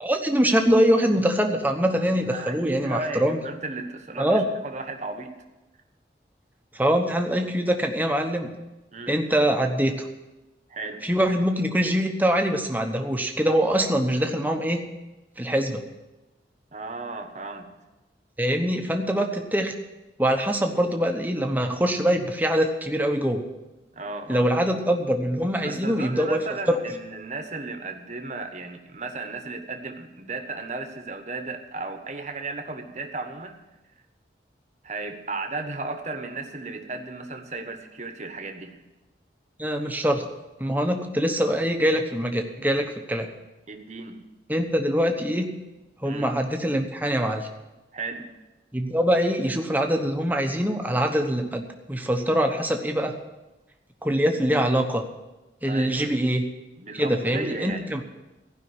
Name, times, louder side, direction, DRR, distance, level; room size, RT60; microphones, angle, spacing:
voice 1, 0.0-3.4 4.2-4.4 6.7-8.5 9.1-10.0 11.0-14.9 15.4-15.9 18.4-19.7 20.2-23.4 24.3-26.4 26.7-26.8 39.6-40.3 40.6-43.3 44.5-45.5 46.0-47.5 48.7-51.6 51.9-53.1 54.0-55.1 55.6-56.5 56.9-58.0, equal, 10° right, 4 dB, 1.0 m, -23 dB
voice 2, 2.3-5.3 8.9-9.1 10.7-11.1 16.7-17.7 23.9-24.5 25.6-33.6 34.8-38.8 43.7-44.3 46.0-46.3 47.9-48.3 55.6-56.2 56.8-57.9, right 3 dB, 40° right, 5 dB, 1.3 m, -35 dB
15.5 x 5.6 x 9.7 m, 1.0 s
head